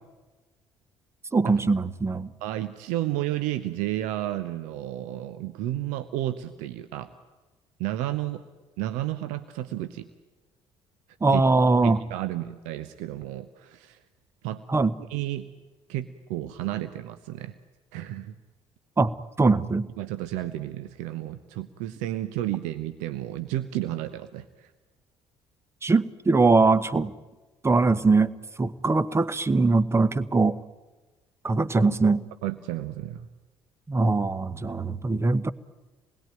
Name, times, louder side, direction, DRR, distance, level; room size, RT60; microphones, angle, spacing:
voice 1, 1.3-2.3 11.2-12.0 14.7-14.9 19.0-19.9 25.8-27.1 27.6-28.3 28.6-30.6 31.4-32.2 33.9-35.5, right 3 dB, 20° right, 17 dB, 1.0 m, -22 dB
voice 2, 2.4-7.1 7.8-8.4 8.8-10.1 11.3-11.4 11.8-14.0 14.4-14.6 15.1-15.5 15.9-17.5 17.9-18.3 20.0-24.7 32.4-33.3, right 14 dB, 60° right, 11 dB, 0.9 m, -32 dB
27.0 x 20.5 x 9.0 m, 1.2 s
figure-of-eight pair, 50°, 14 cm